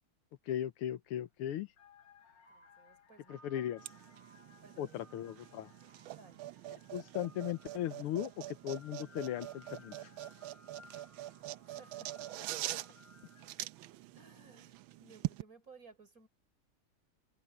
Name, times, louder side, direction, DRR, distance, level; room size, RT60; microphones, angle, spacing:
voice 1, 0.5-1.7 3.3-3.8 4.8-5.7 6.9-10.0, left 11 dB, 90° left, 1.8 m, -37 dB
sound 1, 1.1-1.3 1.7-13.8, left 3 dB, 55° left, 3.6 m, -61 dB
voice 2, 2.5-3.6 4.5-5.0 6.1-6.5 11.6-13.0 14.1-16.3, right 4 dB, 40° right, 4.5 m, -59 dB
sound 2, 3.8-15.4, right 15 dB, 75° right, 1.4 m, -44 dB
omnidirectional pair, 2.4 m